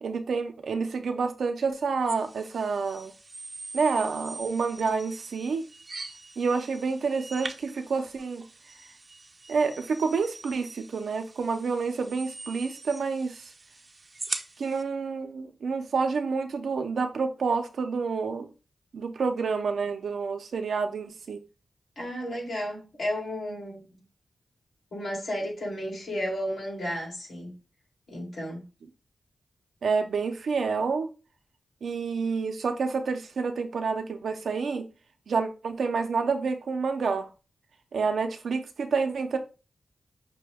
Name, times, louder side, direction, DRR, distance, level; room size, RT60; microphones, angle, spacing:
voice 1, 0.0-3.1 3.7-5.6 6.4-8.4 9.5-13.5 14.6-18.5 18.9-21.4 29.8-31.1 31.8-34.9 35.3-37.3 37.9-39.4, right 4 dB, 85° right, 0.6 m, -28 dB
sound 1, 2.1-14.8, right 3 dB, 40° right, 0.6 m, -42 dB
voice 2, 22.0-24.0 24.9-27.5 28.1-28.7, equal, 80° left, 2.4 m, -33 dB
5.9 x 2.3 x 3.4 m
cardioid pair, 70°, 0 cm